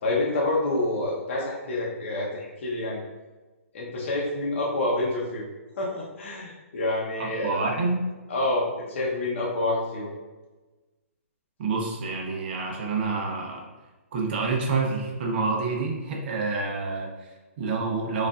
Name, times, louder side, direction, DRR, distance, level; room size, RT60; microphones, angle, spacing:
voice 1, 0.0-3.0 3.7-5.4 5.8-7.6 8.3-10.1, left 2 dB, 55° left, -4 dB, 0.8 m, -27 dB
voice 2, 7.2-8.0 11.6-13.7 14.1-18.3, right 4 dB, 40° right, 0 dB, 0.7 m, -28 dB
5.0 x 2.5 x 2.4 m, 1.2 s
hypercardioid pair, 155°, 8 cm